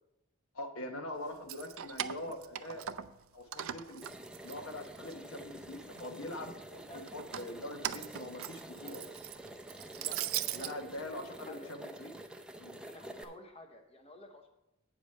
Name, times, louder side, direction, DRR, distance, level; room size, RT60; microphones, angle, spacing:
voice 1, 0.5-2.9 3.3-4.1 4.4-9.1 10.5-12.1 12.6-12.8, left 1 dB, 70° left, 4 dB, 1.1 m, -43 dB
Keys jangling, 1.3-3.2 3.5-5.1 5.5-6.3 7.1-10.7, right 11 dB, 70° right, 0.4 m, -40 dB
sound 1, 4.0-13.2, right 1 dB, 5° right, 0.5 m, -48 dB
voice 2, 6.5-7.0 10.0-11.7 12.9-14.5, left 1 dB, 30° left, 4 dB, 0.8 m, -52 dB
8.6 x 5.0 x 6.4 m, 0.84 s
head